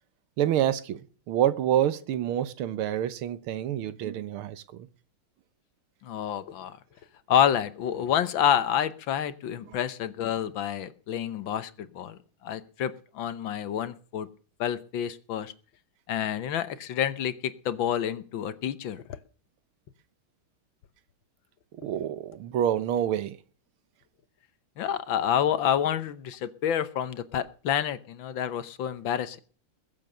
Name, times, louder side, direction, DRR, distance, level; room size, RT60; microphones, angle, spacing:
voice 1, 0.4-4.9 9.7-9.8 21.8-23.4, right 11 dB, 85° right, 1.8 m, -27 dB
voice 2, 6.0-6.8 7.3-14.3 14.6-15.5 16.1-19.0 24.8-29.4, left 9 dB, 70° left, 1.7 m, -28 dB
20.5 x 7.5 x 6.7 m
omnidirectional pair, 2.3 m